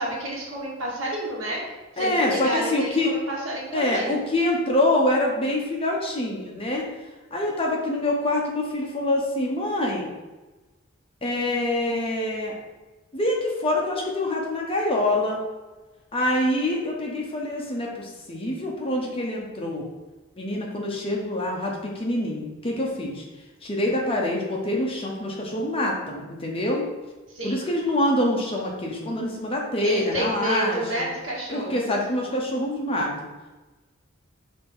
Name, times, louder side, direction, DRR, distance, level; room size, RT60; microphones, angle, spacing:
voice 1, 0.0-1.6 1.9-4.2 27.3-27.6 29.8-31.9, right 1 dB, 65° right, -4 dB, 1.9 m, -30 dB
voice 2, 2.0-3.1 3.7-6.9 7.3-10.1 11.2-12.5 13.1-15.4 16.1-19.8 20.4-23.2 23.6-26.9 27.4-31.0 31.5-33.1, left 1 dB, 25° left, -1 dB, 0.9 m, -25 dB
5.1 x 3.5 x 5.4 m, 1.2 s
head